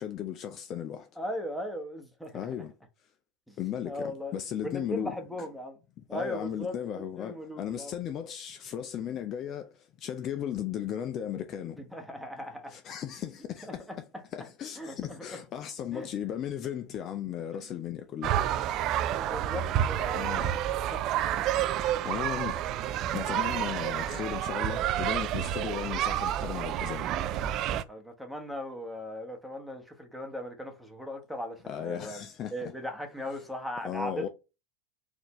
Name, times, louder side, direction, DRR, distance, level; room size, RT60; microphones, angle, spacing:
voice 1, 0.0-1.1 2.3-2.7 3.6-5.1 6.1-9.7 10.0-11.8 12.7-13.9 14.3-18.4 20.1-20.5 22.0-22.5 23.1-27.1 31.7-32.5 33.8-34.3, left 10 dB, 40° left, 0.5 m, -36 dB
voice 2, 1.2-2.5 3.5-3.6 3.8-4.4 4.6-5.8 6.1-7.9 11.8-12.8 13.7-13.8 14.7-15.2 15.9-16.1 17.5-17.6 18.9-20.6 20.9-21.2 22.5-22.7 27.9-32.2 32.5-34.3, equal, ahead, 1.1 m, -38 dB
sound 1, 18.2-27.8, right 11 dB, 45° right, 0.3 m, -29 dB
4.0 x 2.6 x 3.1 m
hypercardioid pair, 85°, 0 cm